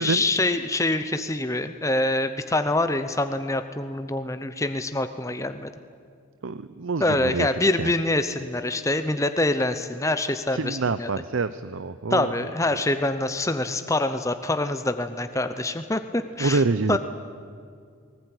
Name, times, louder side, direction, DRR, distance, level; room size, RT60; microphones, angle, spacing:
voice 1, 0.0-5.7 7.0-11.1 12.1-16.6 16.9-17.0, left 2 dB, 15° left, 9 dB, 0.8 m, -25 dB
voice 2, 6.4-7.5 7.8-7.9 10.5-12.3 16.4-17.0, right 3 dB, 75° right, 13 dB, 0.7 m, -26 dB
19.5 x 19.5 x 9.9 m, 2.2 s
head